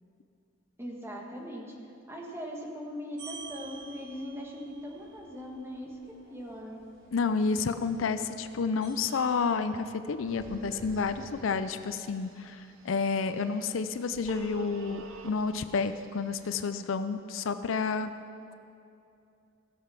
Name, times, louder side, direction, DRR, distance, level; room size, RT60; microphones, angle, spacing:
voice 1, 0.8-1.7 2.1-6.0 6.3-6.8, equal, 15° right, -1 dB, 1.5 m, -40 dB
sound 1, 3.2-12.0, right 3 dB, 65° right, 2.5 m, -50 dB
voice 2, 7.1-18.1, left 5 dB, 75° left, 10 dB, 0.5 m, -30 dB
Telephone, 10.3-16.7, right 6 dB, 85° right, 0.9 m, -49 dB
16.0 x 7.0 x 5.8 m, 2.6 s
head